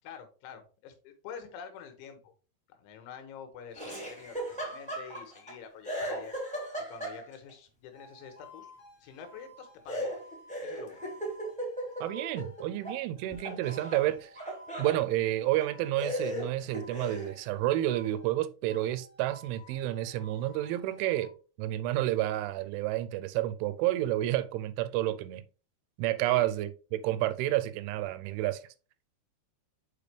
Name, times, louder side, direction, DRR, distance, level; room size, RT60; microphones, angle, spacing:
voice 1, 0.0-2.3 2.7-6.3 6.8-8.7 9.0-10.2 10.6-11.0 26.2-26.5, left 7 dB, 80° left, 3.3 m, -47 dB
Laughter, 3.7-5.5 5.8-7.5 9.9-13.0 13.3-15.0 15.6-15.7 16.0-17.3, right 1 dB, 5° left, 1.4 m, -37 dB
sound 1, 7.9-16.2 16.7-18.4 18.7-21.3, right 1 dB, 45° left, 2.5 m, -53 dB
voice 2, 12.0-14.3 14.8-21.3 21.6-25.4 26.0-28.6, right 14 dB, 85° right, 3.0 m, -30 dB
6.9 x 5.2 x 3.2 m
omnidirectional pair, 5.5 m